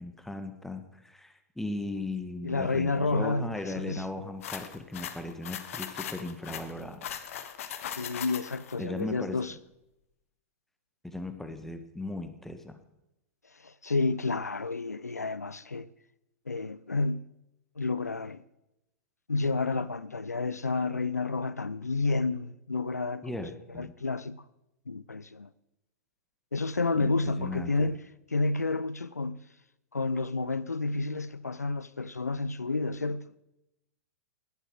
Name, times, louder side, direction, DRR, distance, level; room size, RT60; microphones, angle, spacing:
voice 1, 0.0-7.1 8.8-9.4 11.0-12.8 23.2-23.9 27.0-27.9, left 2 dB, 5° left, 1.6 m, -37 dB
voice 2, 2.4-4.3 8.0-9.5 13.5-15.9 16.5-17.2 17.8-18.4 19.3-23.4 23.7-24.4 24.9-25.5 26.5-28.0 28.3-29.4 29.9-33.2, left 3 dB, 85° left, 0.7 m, -30 dB
sound 1, 4.4-8.8, left 9 dB, 60° left, 1.5 m, -39 dB
17.5 x 12.0 x 4.9 m
figure-of-eight pair, 100°, 8 cm